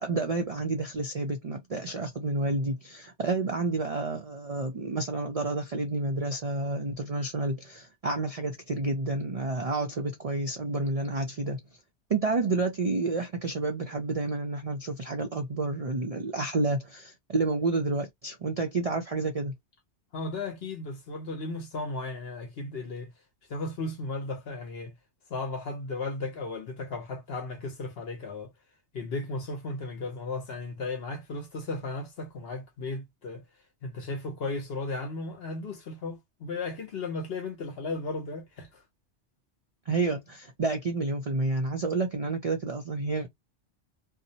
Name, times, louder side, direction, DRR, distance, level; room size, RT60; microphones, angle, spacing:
voice 1, 0.0-11.6 12.1-19.5 39.9-43.3, right 3 dB, 50° right, 0.4 m, -30 dB
voice 2, 20.1-23.1 23.5-24.9 25.3-28.5 28.9-33.4 33.8-38.8, left 3 dB, 60° left, 1.0 m, -35 dB
2.6 x 2.0 x 2.7 m
omnidirectional pair, 1.2 m